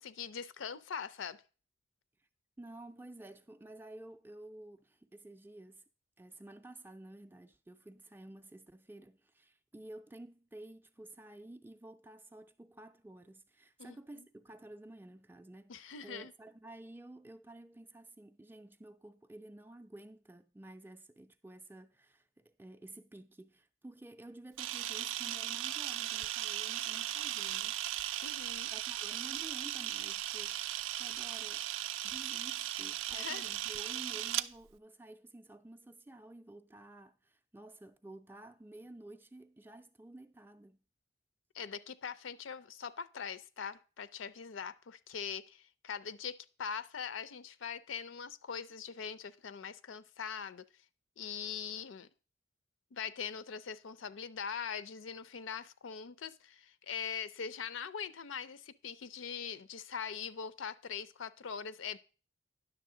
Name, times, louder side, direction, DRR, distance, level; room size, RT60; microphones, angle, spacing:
voice 1, 0.0-1.4 13.8-14.3 15.7-16.3 28.2-28.7 33.1-33.5 41.5-50.7 51.2-52.1 52.9-62.0, left 7 dB, 85° left, 0.5 m, -42 dB
voice 2, 2.6-5.8 6.2-27.8 28.7-31.7 32.0-40.8, right 1 dB, 10° right, 0.3 m, -52 dB
Camera, 24.6-34.5, right 13 dB, 90° right, 0.4 m, -37 dB
10.0 x 6.7 x 3.7 m
head